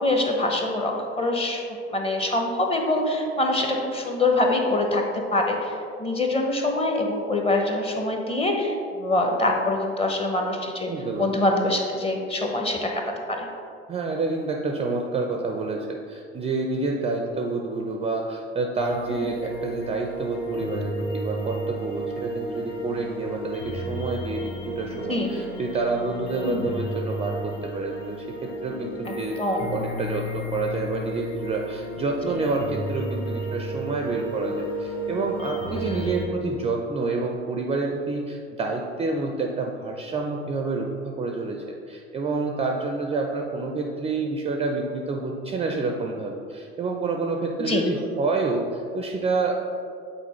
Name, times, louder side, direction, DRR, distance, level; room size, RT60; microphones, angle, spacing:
voice 1, 0.0-5.0 5.3-5.7 6.0-10.9 11.2-12.9 13.3-13.5 19.1-19.3 25.1-25.4 26.4-26.6 29.4-29.6 35.7-36.1 47.6-47.8, left 2 dB, 20° left, 2 dB, 0.8 m, -24 dB
voice 2, 10.9-11.4 13.9-28.2 28.6-29.4 29.7-49.6, right 3 dB, 20° right, 1 dB, 0.4 m, -28 dB
sound 1, 18.8-36.3, right 1 dB, 40° left, 1.3 m, -33 dB
8.0 x 3.9 x 3.0 m, 2.4 s
figure-of-eight pair, 70°, 33 cm